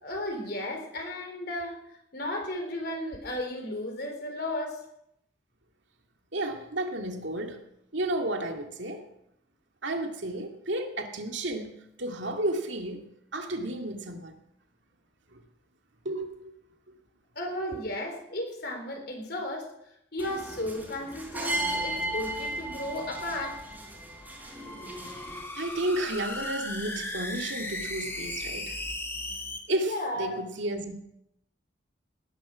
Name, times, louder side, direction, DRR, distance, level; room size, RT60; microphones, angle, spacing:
voice 1, 0.0-1.8 2.1-4.8 17.4-19.7 20.1-23.6 29.8-30.4, left 1 dB, 55° left, 3 dB, 3.8 m, -34 dB
voice 2, 6.3-7.6 7.9-9.0 9.8-11.7 12.0-13.0 13.3-14.3 15.3-15.4 16.0-16.5 24.5-24.7 25.2-25.3 25.5-28.8 29.7-30.9, right 1 dB, 75° right, 4 dB, 2.3 m, -32 dB
sound 1, 20.2-25.4, right 1 dB, 10° right, 3.7 m, -35 dB
sound 2, 24.2-29.6, left 2 dB, 15° left, 1.8 m, -37 dB
18.5 x 11.0 x 6.3 m, 0.77 s
head